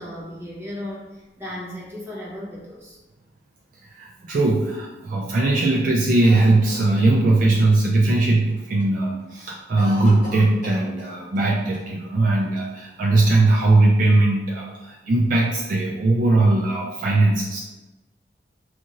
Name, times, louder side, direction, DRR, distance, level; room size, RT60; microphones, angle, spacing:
voice 1, 0.0-3.0, left 1 dB, 15° right, -6 dB, 0.7 m, -35 dB
voice 2, 4.0-17.6, right 2 dB, 45° right, -2 dB, 0.3 m, -19 dB
Cough, 6.2-7.7 8.1-8.2 8.5-8.9 9.2-11.5 11.7-11.8 12.6-13.4, equal, 45° left, 0.6 m, -39 dB
2.5 x 2.5 x 2.9 m, 1.1 s
head